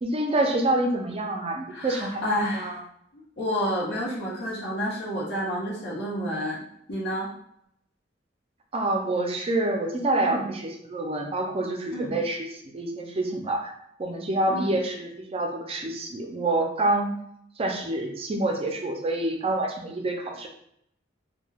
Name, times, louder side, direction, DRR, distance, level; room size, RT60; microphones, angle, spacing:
voice 1, 0.0-2.3 2.5-2.8 8.7-13.7 14.0-17.2 17.6-20.5, right 2 dB, 30° right, 2 dB, 0.4 m, -27 dB
voice 2, 1.7-2.8 3.1-6.6 6.9-7.3 10.2-10.5 11.9-12.2 14.5-14.7, equal, 65° left, -5 dB, 0.8 m, -30 dB
2.2 x 2.2 x 3.2 m, 0.71 s
head